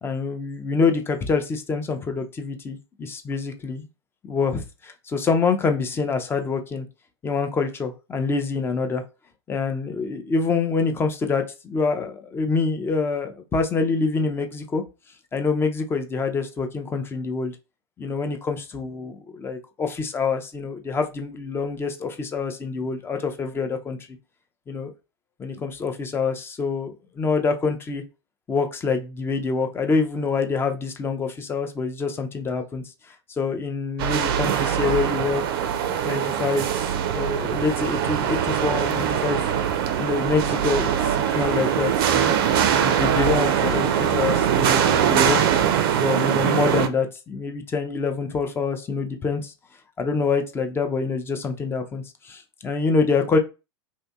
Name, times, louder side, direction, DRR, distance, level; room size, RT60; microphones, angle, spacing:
voice 1, 0.0-3.9 4.2-6.9 7.2-9.0 9.5-14.8 15.3-17.6 18.0-24.0 24.7-24.9 25.4-26.9 27.2-28.0 28.5-35.4 36.0-36.8 37.1-39.4 40.0-42.3 42.7-45.7 46.0-49.5 50.0-53.4, left 4 dB, 15° left, 6 dB, 0.4 m, -26 dB
sound 1, 34.0-46.9, right 9 dB, 55° right, 0.4 m, -22 dB
2.6 x 2.6 x 2.2 m, 0.29 s
figure-of-eight pair, 95°, 14 cm